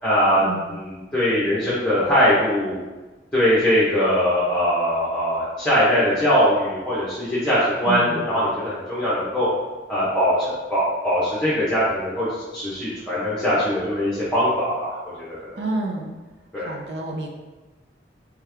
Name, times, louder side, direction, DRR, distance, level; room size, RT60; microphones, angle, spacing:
voice 1, 0.0-2.8 3.3-9.5 9.9-15.3 16.5-16.7, equal, 5° left, -11 dB, 0.9 m, -21 dB
voice 2, 7.9-8.2 15.6-16.1 16.6-17.3, right 2 dB, 70° right, 0 dB, 0.7 m, -29 dB
3.5 x 3.2 x 3.4 m, 1.2 s
head